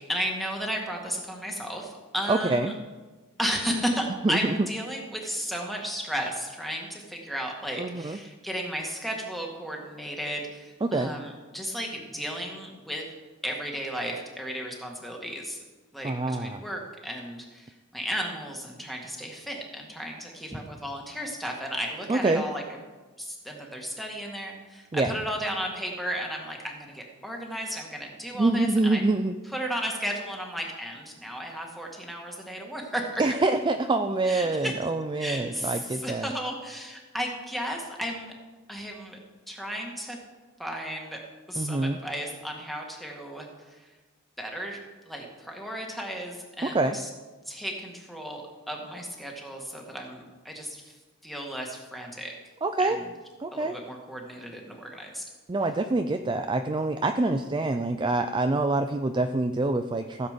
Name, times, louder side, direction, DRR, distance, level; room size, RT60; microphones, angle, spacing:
voice 1, 0.1-2.7 3.4-13.0 13.4-15.6 15.9-22.6 23.2-29.0 29.5-33.2 34.3-34.7 35.2-38.3 38.7-39.2 39.5-40.2 40.6-41.2 41.5-43.9 44.4-44.8 45.1-47.1 47.5-51.0 51.2-52.3 52.8-53.1 53.5-55.2, equal, ahead, 0 dB, 1.8 m, -34 dB
voice 2, 2.3-2.7 4.2-4.7 7.8-8.2 10.8-11.1 16.0-16.6 22.1-22.4 24.9-25.1 28.3-29.4 33.2-36.3 41.6-42.0 46.6-47.0 52.6-53.0 53.4-53.8 55.5-60.3, right 2 dB, 20° right, 7 dB, 0.4 m, -26 dB
16.0 x 7.3 x 5.2 m, 1.3 s
head